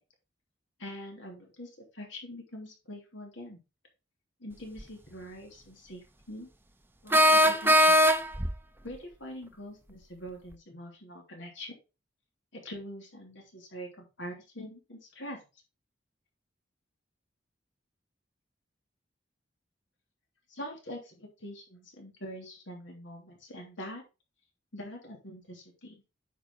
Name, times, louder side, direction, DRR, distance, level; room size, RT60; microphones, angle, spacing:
voice 1, 0.8-3.6 4.4-6.5 7.0-8.0 8.8-11.7 12.5-15.4 20.5-24.0 24.7-26.0, equal, 80° left, 1 dB, 3.1 m, -44 dB
sound 1, 4.8-4.9 7.1-8.5, equal, 10° right, 0.7 m, -20 dB
9.3 x 5.4 x 3.9 m, 0.29 s
head